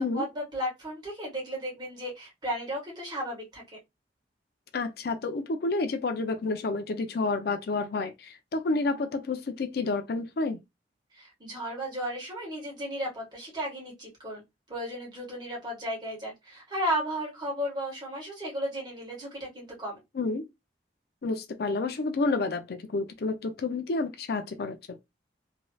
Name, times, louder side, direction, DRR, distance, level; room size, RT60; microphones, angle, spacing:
voice 1, 0.0-3.6 11.1-14.4 14.7-20.0, equal, 25° right, 1.4 m, -34 dB
voice 2, 4.7-10.6 20.1-20.4 21.2-25.0, left 3 dB, 60° left, 0.4 m, -30 dB
3.1 x 2.7 x 2.3 m
head